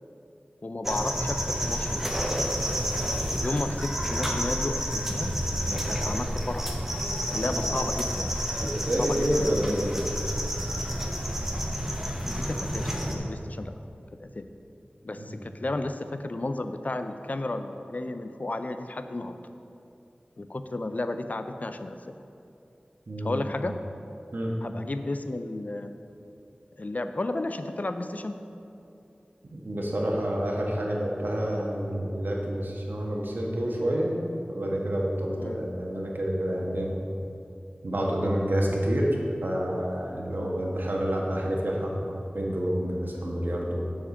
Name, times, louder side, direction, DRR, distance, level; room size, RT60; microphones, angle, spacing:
voice 1, 0.6-2.1 3.4-5.3 5.7-6.7 7.2-8.3 9.0-10.0 12.2-13.7 14.2-14.5 15.0-19.4 20.4-22.2 23.2-23.8 24.6-26.0 26.8-28.4 35.4-35.6 38.2-38.4 40.3-40.5, left 2 dB, 50° left, 8 dB, 0.5 m, -33 dB
sound 1, 0.8-13.1, equal, 10° right, 1.0 m, -29 dB
voice 2, 8.7-10.1 15.2-15.4 23.1-23.4 24.3-24.6 29.5-34.2 34.5-36.9 37.8-43.8, equal, 75° right, -2 dB, 1.3 m, -28 dB
7.2 x 4.9 x 7.1 m, 2.7 s
wide cardioid pair, 60°, 3 cm